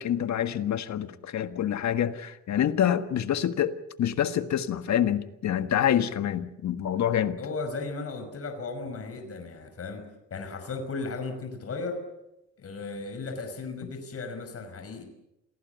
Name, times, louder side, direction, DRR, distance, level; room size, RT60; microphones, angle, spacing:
voice 1, 0.0-7.4, left 10 dB, 65° left, 1.6 m, -27 dB
voice 2, 7.4-10.0 10.3-12.0 12.6-15.0, left 3 dB, 50° left, 5.4 m, -35 dB
27.5 x 18.0 x 8.2 m
cardioid pair, 90°, 30 cm